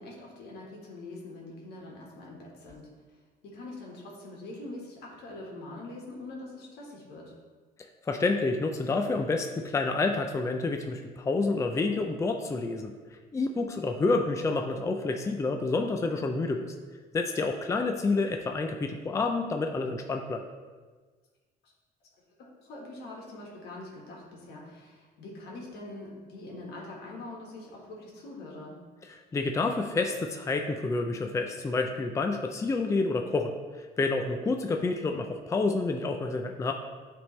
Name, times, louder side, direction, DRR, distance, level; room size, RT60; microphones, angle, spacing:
voice 1, 0.0-2.9 3.4-7.3 22.4-28.8, left 2 dB, 80° left, -2 dB, 1.7 m, -43 dB
voice 2, 8.0-12.9 13.3-16.7 17.1-20.4 29.0-36.7, left 3 dB, 15° left, 4 dB, 0.4 m, -29 dB
10.0 x 3.5 x 3.2 m, 1.4 s
cardioid pair, 110°, 17 cm